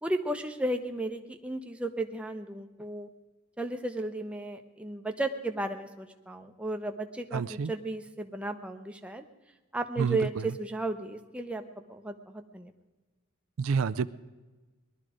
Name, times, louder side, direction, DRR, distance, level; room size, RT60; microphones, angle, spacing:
voice 1, 0.0-3.1 3.6-9.2 9.7-12.7, right 2 dB, 5° right, 5 dB, 0.7 m, -34 dB
voice 2, 7.3-7.7 10.0-10.2 13.6-14.1, right 5 dB, 70° right, 13 dB, 0.4 m, -28 dB
19.5 x 12.0 x 5.0 m, 1.2 s
head